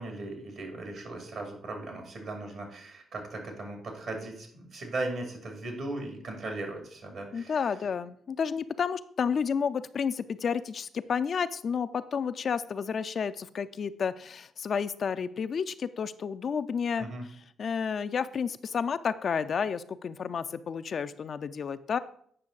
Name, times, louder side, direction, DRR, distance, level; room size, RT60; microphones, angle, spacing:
voice 1, 0.0-7.7 17.0-17.3, right 2 dB, 65° right, 3 dB, 2.5 m, -38 dB
voice 2, 7.3-17.1 17.6-22.0, left 6 dB, 55° left, 11 dB, 0.4 m, -31 dB
8.8 x 5.6 x 3.9 m, 0.64 s
hypercardioid pair, 50°, 0 cm